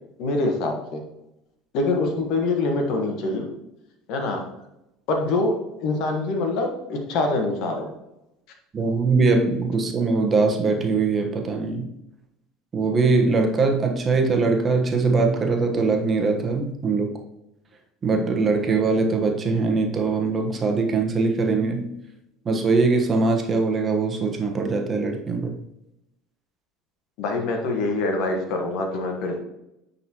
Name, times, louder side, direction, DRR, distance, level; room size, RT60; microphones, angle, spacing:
voice 1, 0.2-1.0 1.7-3.5 4.1-4.4 5.1-7.9 27.2-29.4, left 2 dB, 65° left, 3 dB, 1.3 m, -25 dB
voice 2, 8.7-11.9 12.7-17.2 18.0-21.9 22.4-25.6, right 3 dB, 35° right, 3 dB, 1.1 m, -22 dB
9.3 x 4.1 x 3.0 m, 0.87 s
hypercardioid pair, 80°, 0 cm